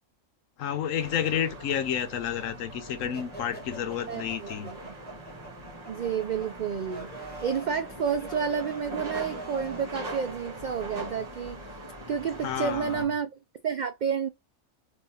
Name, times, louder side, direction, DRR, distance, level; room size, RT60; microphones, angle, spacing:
voice 1, 0.6-4.7 12.4-13.1, left 9 dB, 75° left, 1.1 m, -30 dB
sound 1, 1.0-13.0, right 1 dB, 20° right, 1.6 m, -42 dB
sound 2, 3.1-9.9, right 2 dB, 10° left, 1.1 m, -45 dB
voice 2, 4.1-4.8 5.9-7.1 7.4-11.7 12.1-14.3, right 7 dB, 90° right, 0.4 m, -30 dB
3.6 x 3.3 x 2.8 m
omnidirectional pair, 1.4 m